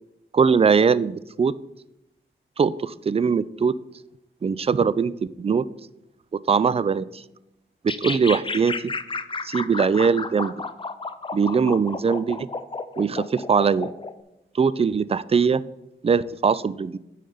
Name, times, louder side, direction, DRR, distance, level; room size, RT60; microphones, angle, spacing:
voice 1, 0.3-1.6 2.6-3.7 4.4-5.6 6.3-7.2 7.8-8.9 9.4-10.5 11.3-12.5 13.0-13.9 14.5-15.6 16.0-17.0, right 5 dB, 30° right, 17 dB, 0.3 m, -21 dB
sound 1, 7.9-14.1, left 3 dB, 25° left, 0.5 m, -32 dB
9.2 x 3.3 x 5.4 m, 0.89 s
cardioid pair, 50°, 21 cm